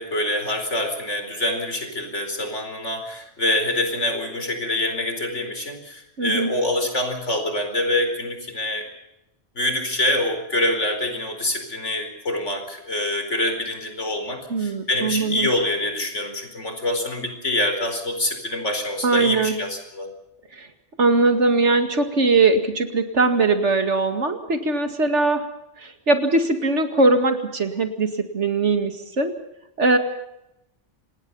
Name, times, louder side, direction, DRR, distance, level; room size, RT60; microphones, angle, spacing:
voice 1, 0.0-8.9 9.5-20.1, left 1 dB, 80° left, 6 dB, 4.8 m, -25 dB
voice 2, 6.2-6.5 14.5-15.5 19.0-19.6 20.5-20.7 21.0-25.5 25.8-29.3 29.8-30.0, right 3 dB, 75° right, 8 dB, 2.5 m, -20 dB
26.0 x 20.0 x 5.6 m, 0.84 s
omnidirectional pair, 1.2 m